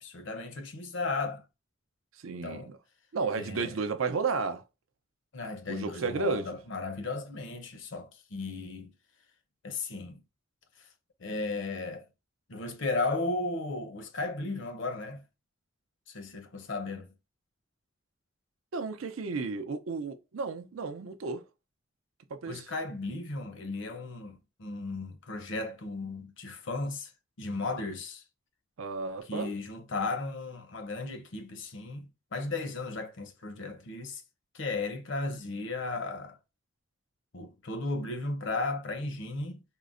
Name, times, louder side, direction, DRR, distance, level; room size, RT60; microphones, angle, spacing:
voice 1, 0.0-1.5 2.4-2.7 3.3-3.7 5.3-8.9 9.6-10.2 10.8-10.9 11.2-12.1 12.5-15.2 16.1-17.1 22.5-27.1 27.4-28.2 29.3-34.2 34.5-36.4 37.3-39.6, left 3 dB, 65° left, 0.6 m, -35 dB
voice 2, 2.2-2.8 3.1-4.6 5.7-6.6 18.7-21.4 22.3-22.6 28.8-29.5, right 4 dB, 85° right, 0.5 m, -33 dB
3.7 x 2.1 x 2.5 m
head